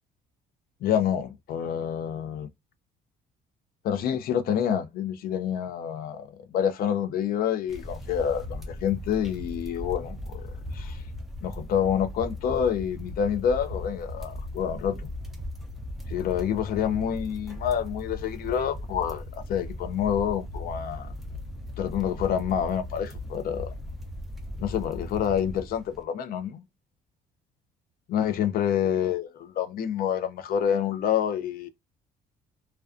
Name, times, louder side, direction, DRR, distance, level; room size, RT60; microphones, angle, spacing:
voice 1, 0.8-2.5 3.8-11.0 11.4-15.1 16.1-21.1 21.8-23.7 24.6-26.6 28.1-31.7, left 9 dB, 60° left, 0.4 m, -28 dB
sound 1, 7.7-26.0, left 1 dB, ahead, 0.5 m, -38 dB
2.4 x 2.2 x 2.4 m
cardioid pair, 110°, 17 cm